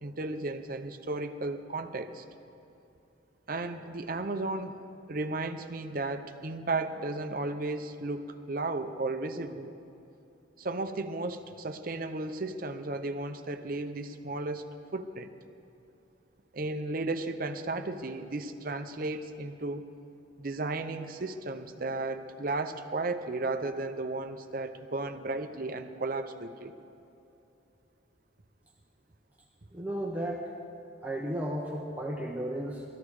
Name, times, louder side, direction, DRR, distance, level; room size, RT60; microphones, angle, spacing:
voice 1, 0.0-2.2 3.5-4.8 5.1-9.8 10.6-15.3 16.5-19.9 20.4-26.7, right 2 dB, 45° right, 7 dB, 0.7 m, -34 dB
voice 2, 29.7-30.5 31.0-32.8, right 1 dB, 10° right, -2 dB, 0.9 m, -34 dB
19.0 x 14.0 x 4.8 m, 2.8 s
head